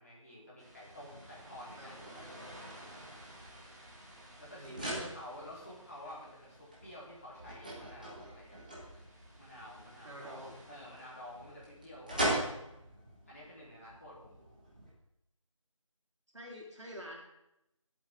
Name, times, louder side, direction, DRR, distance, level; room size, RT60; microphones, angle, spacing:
voice 1, 0.0-2.3 4.4-8.6 9.4-12.5 13.3-14.4, left 1 dB, 25° left, -7 dB, 4.1 m, -50 dB
sound 1, 0.6-11.8, right 1 dB, 30° right, 2.9 m, -55 dB
sound 2, 2.0-14.9, right 1 dB, 15° right, 1.6 m, -42 dB
voice 2, 4.5-5.1 10.0-10.6 16.3-17.2, right 1 dB, 60° right, -2 dB, 4.0 m, -46 dB
20.0 x 8.4 x 3.7 m, 0.86 s
figure-of-eight pair, 180°, 17 cm